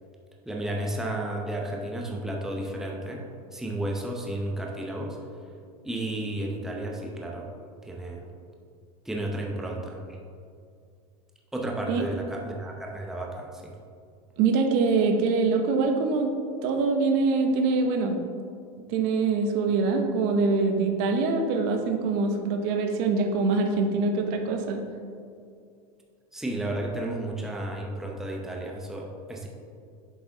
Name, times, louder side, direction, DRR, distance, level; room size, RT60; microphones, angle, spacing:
voice 1, 0.5-3.2 3.5-5.2 5.8-7.5 7.8-8.2 9.0-10.0 11.5-13.7 26.3-29.5, right 1 dB, ahead, -1 dB, 0.7 m, -32 dB
voice 2, 14.4-16.3 16.6-18.2 18.9-24.8, right 4 dB, 55° right, 5 dB, 0.8 m, -24 dB
7.5 x 4.7 x 3.8 m, 2.3 s
supercardioid pair, 135°, 18 cm